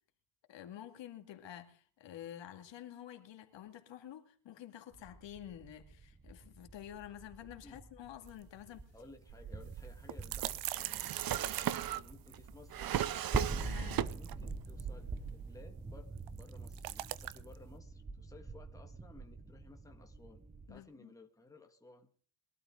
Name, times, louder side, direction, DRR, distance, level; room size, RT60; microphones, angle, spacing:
voice 1, 0.5-8.9 13.6-14.1 20.7-21.1, left 11 dB, 60° left, 2.4 m, -49 dB
sound 1, 4.9-20.8, right 3 dB, 15° right, 1.1 m, -45 dB
sound 2, 8.3-8.4 8.7-8.8 9.6-12.8 13.8-14.9 16.2-17.6, right 17 dB, 90° right, 0.9 m, -42 dB
voice 2, 8.9-11.0 11.5-13.2 13.9-20.4 20.7-22.1, left 3 dB, 5° left, 1.8 m, -57 dB
Drawer open or close, 9.3-14.5 14.8-15.6, right 11 dB, 45° right, 0.8 m, -38 dB
22.0 x 12.5 x 3.8 m
cardioid pair, 115°, 50 cm